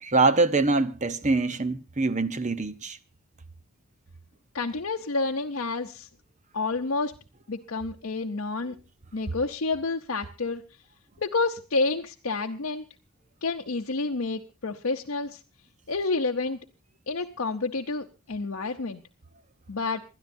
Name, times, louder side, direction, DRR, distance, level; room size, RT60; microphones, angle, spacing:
voice 1, 0.0-3.0, right 3 dB, 35° right, 0.8 m, -24 dB
voice 2, 4.5-6.1 6.5-7.1 7.5-8.8 9.1-10.6 11.2-12.8 13.4-15.4 15.9-16.6 17.1-19.0 19.7-20.0, left 3 dB, 65° left, 0.8 m, -29 dB
27.0 x 12.5 x 2.7 m
head